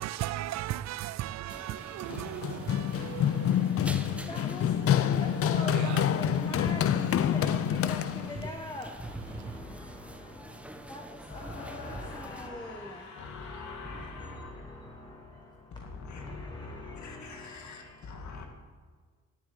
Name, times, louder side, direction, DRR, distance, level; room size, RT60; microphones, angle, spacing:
voice 1, 0.0-3.5, right 13 dB, 65° right, 0.5 m, -36 dB
sound 1, 1.5-12.5, right 1 dB, 5° right, 1.0 m, -45 dB
Run, 2.1-8.5, left 9 dB, 50° left, 0.6 m, -27 dB
voice 2, 4.3-18.5, left 1 dB, 15° left, 1.3 m, -44 dB
sound 2, 11.2-15.4, left 4 dB, 90° left, 2.6 m, -47 dB
voice 3, 13.2-15.0 15.7-18.5, left 4 dB, 70° left, 2.0 m, -44 dB
11.0 x 7.2 x 9.1 m
cardioid pair, 90°, 30 cm